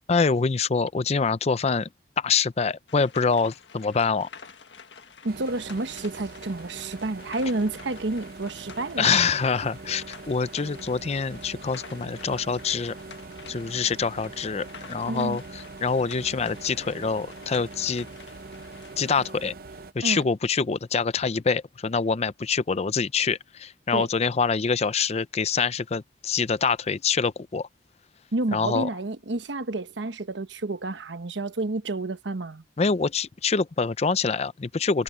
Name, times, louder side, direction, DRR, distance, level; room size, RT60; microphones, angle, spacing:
voice 1, 0.1-1.9 2.2-4.3 9.0-12.9 13.5-18.1 19.0-19.5 19.9-27.7 28.5-28.9 32.8-35.0, left 5 dB, 35° left, 0.5 m, -25 dB
sound 1, 2.9-19.1, left 6 dB, 85° left, 1.6 m, -48 dB
voice 2, 5.2-9.1 15.1-15.4 20.0-20.2 23.9-24.1 28.3-32.6, right 2 dB, 85° right, 1.1 m, -30 dB
sound 2, 5.3-19.9, right 3 dB, 55° right, 0.7 m, -43 dB
head